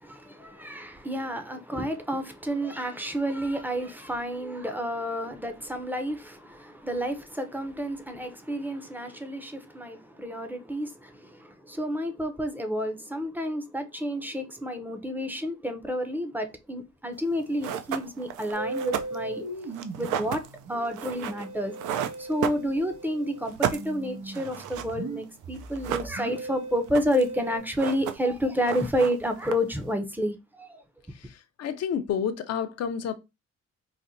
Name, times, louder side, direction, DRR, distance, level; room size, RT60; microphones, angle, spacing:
voice 1, 0.0-19.4 20.0-20.4 20.7-30.8, equal, 5° right, 0.5 m, -30 dB
sound 1, 17.2-17.3 17.6-23.1 23.4-25.0 25.2-25.3 25.6-26.5 26.8-27.4 27.6-28.4 28.6-29.9, right 9 dB, 80° right, 0.4 m, -33 dB
Musical instrument, 18.5-27.6, right 2 dB, 55° right, 1.5 m, -39 dB
voice 2, 31.1-33.1, left 7 dB, 55° left, 0.5 m, -30 dB
4.1 x 2.1 x 2.6 m
cardioid pair, 90°, 30 cm